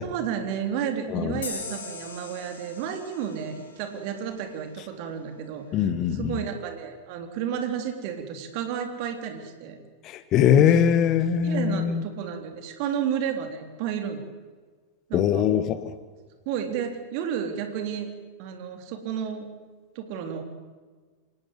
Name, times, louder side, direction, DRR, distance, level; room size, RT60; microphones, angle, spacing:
voice 1, 0.0-9.8 10.6-10.7 11.4-14.2 15.1-15.5 16.5-18.1 18.4-19.5 20.0-20.4, right 8 dB, 45° right, 5 dB, 3.7 m, -32 dB
voice 2, 1.1-1.4 5.7-6.4 10.0-12.0 15.1-15.9, left 9 dB, 35° left, 13 dB, 1.5 m, -22 dB
sound 1, 1.4-4.8, left 4 dB, 65° left, 5.2 m, -41 dB
26.5 x 18.0 x 8.0 m, 1.4 s
figure-of-eight pair, 90°, 0 cm